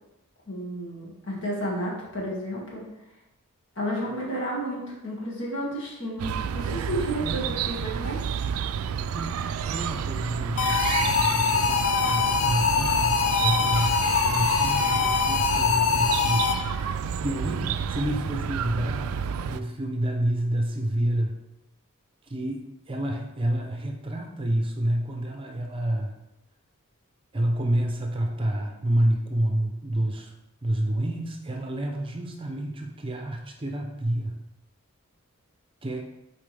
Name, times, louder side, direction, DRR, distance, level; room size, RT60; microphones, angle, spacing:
voice 1, 0.5-2.9 3.8-8.2, equal, 60° left, -5 dB, 2.0 m, -32 dB
Chirp tweet, 6.2-19.6, right 7 dB, 85° right, 0.3 m, -30 dB
voice 2, 9.1-14.0 14.3-16.6 17.2-19.2 19.5-21.4 22.2-26.2 27.3-30.3 30.6-34.4 35.8-36.0, right 1 dB, 25° right, 2 dB, 0.6 m, -29 dB
sound 1, 10.6-16.9, left 6 dB, 75° left, 0.5 m, -24 dB
7.2 x 4.5 x 3.4 m, 0.92 s
head